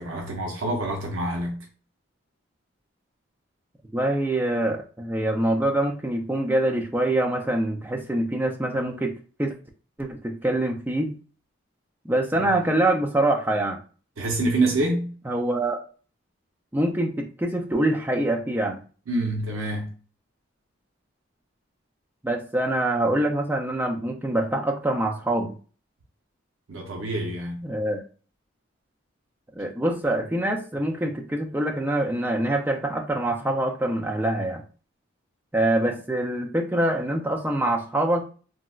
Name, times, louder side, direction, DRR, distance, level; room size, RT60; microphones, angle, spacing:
voice 1, 0.0-1.7 12.3-12.5 14.2-15.1 19.1-19.9 26.7-27.7, right 2 dB, 75° right, 0.6 m, -27 dB
voice 2, 3.9-9.1 9.4-9.5 10.0-11.2 12.0-13.8 15.3-15.8 16.7-18.8 22.2-25.5 27.6-28.0 29.6-34.6 35.5-38.2, right 1 dB, 10° right, 0.3 m, -25 dB
3.8 x 2.0 x 2.3 m
head